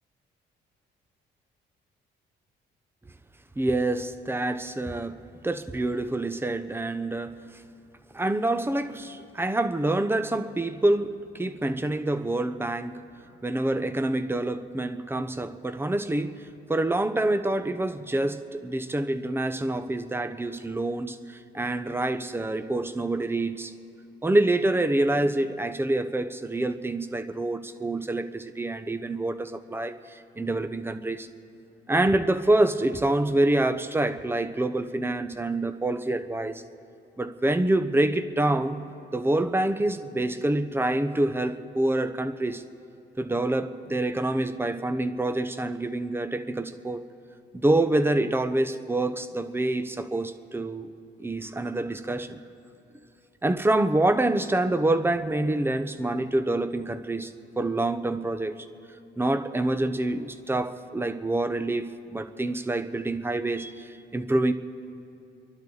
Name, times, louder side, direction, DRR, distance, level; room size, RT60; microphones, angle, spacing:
voice 1, 3.6-7.4 8.1-13.1 13.4-23.7 24.2-31.3 31.9-36.6 37.2-38.8 39.1-42.6 43.2-47.0 47.5-50.9 51.2-52.4 53.4-57.3 57.6-58.5 59.2-64.5, right 2 dB, 10° right, 10 dB, 0.8 m, -26 dB
29.5 x 11.5 x 4.0 m, 2.7 s
cardioid pair, 90°, 20 cm